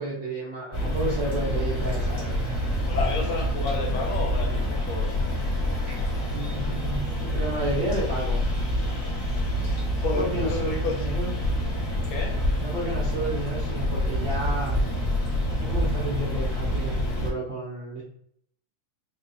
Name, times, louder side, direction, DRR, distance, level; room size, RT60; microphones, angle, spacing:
voice 1, 0.0-2.6 6.3-8.4 10.0-11.3 12.6-14.8 15.6-18.0, right 2 dB, 65° right, -7 dB, 1.2 m, -32 dB
sound 1, 0.7-17.3, equal, 20° left, 1.3 m, -27 dB
voice 2, 2.9-5.2 10.0-11.0 12.1-12.4, left 3 dB, 70° left, 1 dB, 1.9 m, -31 dB
6.4 x 2.5 x 2.7 m, 0.67 s
omnidirectional pair, 3.5 m